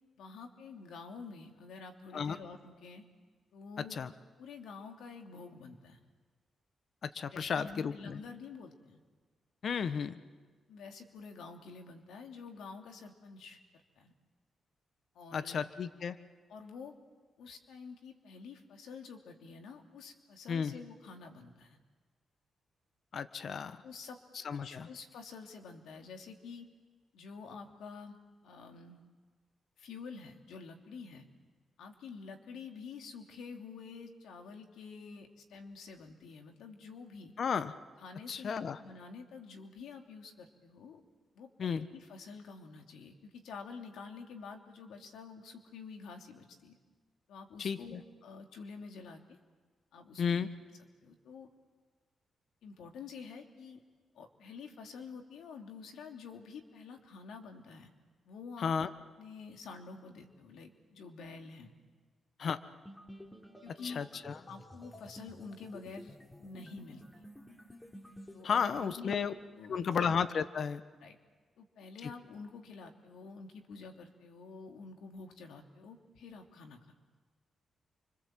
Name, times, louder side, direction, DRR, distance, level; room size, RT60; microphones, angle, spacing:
voice 1, 0.2-3.0 3.5-4.0 4.4-6.0 7.3-9.0 10.7-13.6 14.0-14.1 15.1-15.7 16.5-16.9 17.4-21.8 23.8-24.2 24.5-26.7 27.1-28.2 28.4-29.0 29.8-31.3 31.8-37.3 38.0-41.0 41.3-46.8 47.3-49.4 49.9-50.5 51.0-51.5 52.6-53.8 54.1-57.9 58.2-58.7 59.2-61.7 63.6-64.0 64.5-67.2 68.3-69.3 69.5-70.1 71.0-71.2 71.6-76.8, left 5 dB, 80° left, 4 dB, 2.9 m, -48 dB
voice 2, 7.0-8.2 9.6-10.2 15.3-16.2 20.5-20.7 23.1-23.8 24.4-24.9 37.4-37.7 38.3-38.8 41.6-41.9 47.6-48.0 50.2-50.5 58.6-58.9 62.4-62.6 63.8-64.3 68.4-69.3 69.7-70.8, left 6 dB, 65° left, 12 dB, 1.3 m, -33 dB
sound 1, 62.8-68.4, equal, 15° left, 4.4 m, -52 dB
30.0 x 25.0 x 7.7 m, 1.4 s
supercardioid pair, 45°, 0 cm